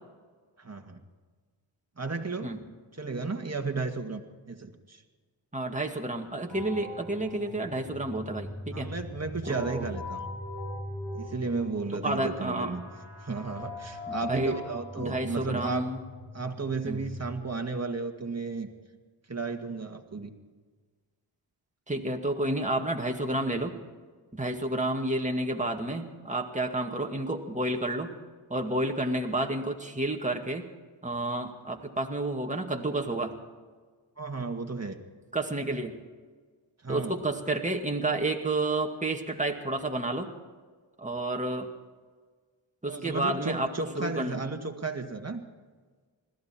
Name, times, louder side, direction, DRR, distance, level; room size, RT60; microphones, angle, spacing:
voice 1, 0.6-1.0 2.0-2.5 3.0-4.2 4.5-5.0 8.7-10.2 11.1-12.8 13.2-15.9 16.3-18.7 19.3-20.3 34.2-35.0 36.8-37.1 42.9-45.4, right 4 dB, 35° right, 5 dB, 2.0 m, -33 dB
voice 2, 5.5-8.9 9.5-9.9 12.0-12.7 14.1-14.6 15.0-16.0 16.8-17.0 21.9-23.7 24.3-28.1 28.5-30.7 31.0-33.4 35.3-35.9 36.9-40.3 41.0-41.7 42.8-44.4, right 2 dB, 15° right, 2 dB, 2.1 m, -30 dB
sound 1, 6.5-17.3, left 2 dB, 90° left, 6.9 m, -41 dB
21.0 x 15.0 x 4.5 m, 1.5 s
cardioid pair, 45°, 46 cm